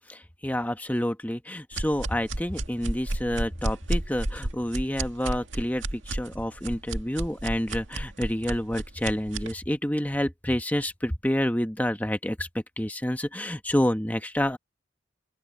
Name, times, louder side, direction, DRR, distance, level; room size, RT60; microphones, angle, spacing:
voice 1, 0.1-12.5 12.8-14.6, equal, 10° left, 1.1 m, -28 dB
sound 1, 1.7-9.5, right 1 dB, 85° right, 2.0 m, -32 dB
open air
head